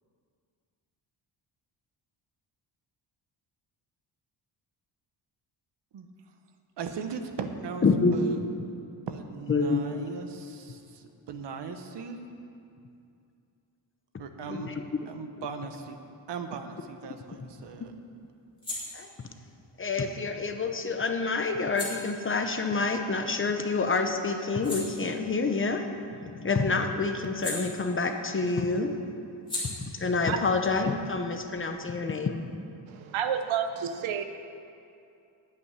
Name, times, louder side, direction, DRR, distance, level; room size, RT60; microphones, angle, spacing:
voice 1, 6.8-8.7 9.1-12.3 14.2-14.7 15.1-16.0 16.3-17.9, right 5 dB, 60° right, 7 dB, 1.1 m, -38 dB
voice 2, 7.8-8.2 9.5-10.0 14.5-15.1 18.9-19.1 19.8-29.0 29.6-32.4, left 4 dB, 25° left, 6 dB, 0.7 m, -28 dB
sound 1, 16.8-23.7 24.1-28.4 28.6-32.0, left 1 dB, 10° left, 3.1 m, -43 dB
voice 3, 32.9-34.2, right 8 dB, 85° right, 9 dB, 0.9 m, -30 dB
9.3 x 8.4 x 9.4 m, 2.6 s
wide cardioid pair, 165°, 46 cm